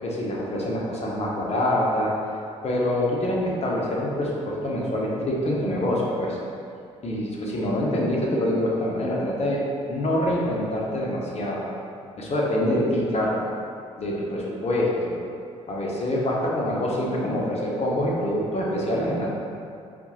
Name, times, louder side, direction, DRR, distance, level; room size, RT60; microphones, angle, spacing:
voice 1, 0.0-2.1 2.6-6.4 7.0-11.6 12.2-13.3 14.0-15.1 15.7-19.3, left 1 dB, 40° left, -4 dB, 1.0 m, -25 dB
4.3 x 2.6 x 4.2 m, 2.4 s
hypercardioid pair, 50°, 16 cm